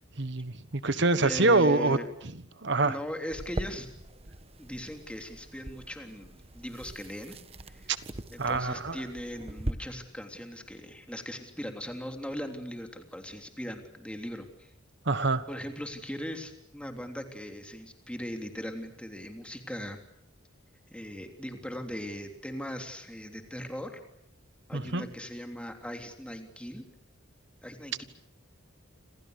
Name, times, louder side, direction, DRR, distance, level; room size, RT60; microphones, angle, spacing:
voice 1, 0.2-2.0 2.6-2.9 8.4-9.0 15.1-15.4 24.7-25.0, right 3 dB, 60° right, 13 dB, 1.4 m, -25 dB
voice 2, 0.9-2.1 2.8-3.9 4.6-7.4 7.7-7.9 8.3-14.7 15.5-20.0 20.9-24.0 24.7-26.8 27.6-28.0, equal, 5° left, 5 dB, 3.3 m, -39 dB
sound 1, 3.3-9.7, right 1 dB, 30° right, 1.3 m, -41 dB
29.5 x 27.0 x 6.7 m, 0.75 s
head